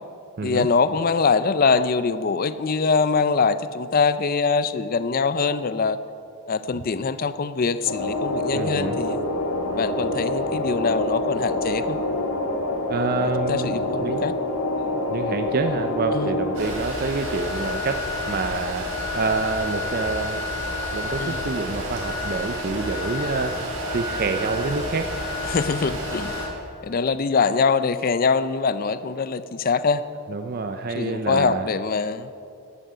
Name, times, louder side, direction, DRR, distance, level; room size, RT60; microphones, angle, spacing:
voice 1, 0.4-6.0 6.5-9.2 9.7-12.0 13.2-14.3 16.1-16.4 21.2-21.5 25.4-26.4 26.8-30.0 30.9-32.3, left 5 dB, 40° left, 13 dB, 0.4 m, -23 dB
sound 1, 7.8-16.6, left 1 dB, 80° left, 1.7 m, -26 dB
voice 2, 8.5-9.0 12.9-14.3 15.1-20.4 20.9-23.6 23.9-25.1 30.3-31.6, right 4 dB, 45° right, 6 dB, 0.5 m, -27 dB
sound 2, 16.5-26.5, left 1 dB, 75° right, 3.2 m, -29 dB
11.5 x 11.5 x 5.5 m, 2.6 s
head